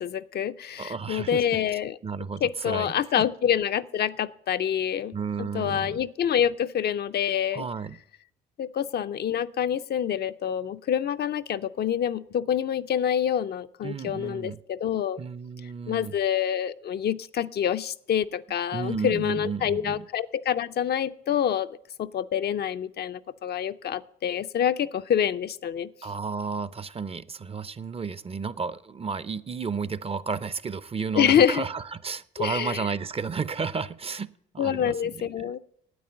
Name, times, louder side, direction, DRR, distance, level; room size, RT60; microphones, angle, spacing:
voice 1, 0.0-2.0 2.4-7.6 8.6-15.2 15.9-21.7 22.0-25.9 31.2-31.6 32.4-32.8 34.6-35.6, left 9 dB, 50° left, 11 dB, 0.5 m, -26 dB
voice 2, 0.8-1.6 2.0-3.3 5.1-6.0 7.5-8.0 13.8-14.6 15.2-16.2 18.7-20.1 26.0-35.5, right 5 dB, 30° right, 17 dB, 0.6 m, -33 dB
9.4 x 8.6 x 7.8 m, 0.71 s
supercardioid pair, 70°, 21 cm